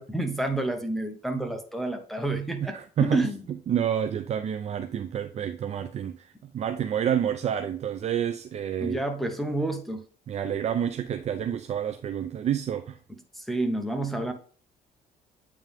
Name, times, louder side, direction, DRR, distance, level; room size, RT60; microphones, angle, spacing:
voice 1, 0.0-3.4 8.8-10.0 13.4-14.3, right 2 dB, ahead, 1.0 m, -29 dB
voice 2, 2.6-9.0 10.3-13.0, right 9 dB, 40° right, 0.5 m, -29 dB
9.0 x 3.4 x 3.5 m
cardioid pair, 110°, 17 cm